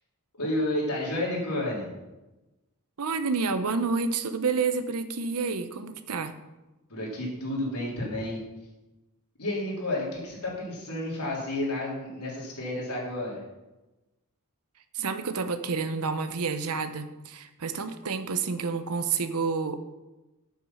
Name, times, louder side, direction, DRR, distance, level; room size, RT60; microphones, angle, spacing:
voice 1, 0.4-1.9 6.9-8.4 9.4-13.4, left 1 dB, 90° left, -4 dB, 3.5 m, -31 dB
voice 2, 3.0-6.3 14.9-19.9, right 4 dB, 75° right, 10 dB, 0.8 m, -29 dB
8.1 x 7.5 x 5.7 m, 1.1 s
head